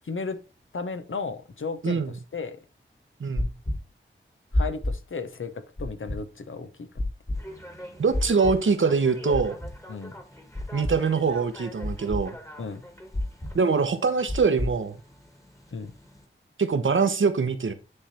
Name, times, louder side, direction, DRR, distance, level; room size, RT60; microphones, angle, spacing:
voice 1, 0.1-0.4 0.7-2.0 2.3-2.6 4.5-6.9 9.9-10.1 12.6-12.8 15.7-15.9, left 4 dB, 80° left, 0.9 m, -34 dB
voice 2, 3.2-3.5 8.0-9.6 10.7-12.4 13.5-15.0 16.6-17.7, right 5 dB, 75° right, 0.9 m, -23 dB
sound 1, 3.4-3.8 4.5-4.9 5.8-6.2 7.0-7.4 8.1-8.5 9.3-9.7 10.5-10.9 11.8-12.2 13.1-13.5 14.3-14.7, left 1 dB, 35° left, 1.8 m, -27 dB
sound 2, 7.3-16.3, left 1 dB, 15° left, 1.5 m, -45 dB
9.8 x 3.3 x 4.2 m
wide cardioid pair, 65°, 20 cm